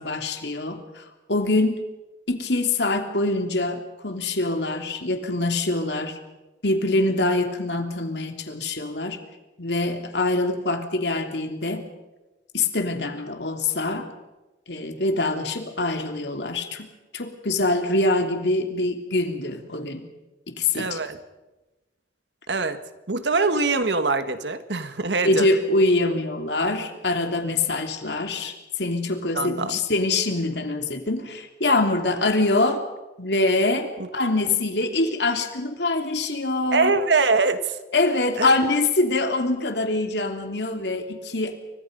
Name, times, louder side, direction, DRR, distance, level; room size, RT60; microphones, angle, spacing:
voice 1, 0.0-1.8 2.3-6.2 6.6-9.2 9.6-11.9 12.5-14.1 14.7-20.1 20.5-21.0 25.2-32.8 33.2-36.9 37.9-41.6, left 2 dB, 70° left, 5 dB, 3.1 m, -24 dB
voice 2, 20.7-21.2 22.5-22.8 23.1-25.5 29.4-29.8 34.0-34.1 36.7-37.8 38.4-38.5, right 3 dB, 90° right, 10 dB, 1.7 m, -23 dB
29.0 x 24.5 x 5.4 m, 1.1 s
head